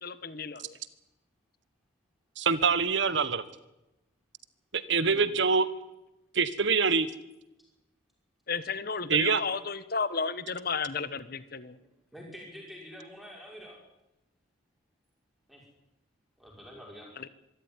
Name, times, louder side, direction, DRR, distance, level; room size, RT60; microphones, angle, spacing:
voice 1, 0.0-0.8 5.1-5.4 8.5-11.8 17.2-17.3, left 5 dB, 50° left, 15 dB, 1.1 m, -33 dB
voice 2, 2.4-3.4 4.7-5.7 6.3-7.1 9.1-9.4, right 5 dB, 60° right, 15 dB, 1.3 m, -25 dB
voice 3, 12.1-13.8 15.5-15.6 16.4-17.1, equal, ahead, -1 dB, 5.6 m, -46 dB
25.0 x 13.0 x 9.7 m, 0.94 s
head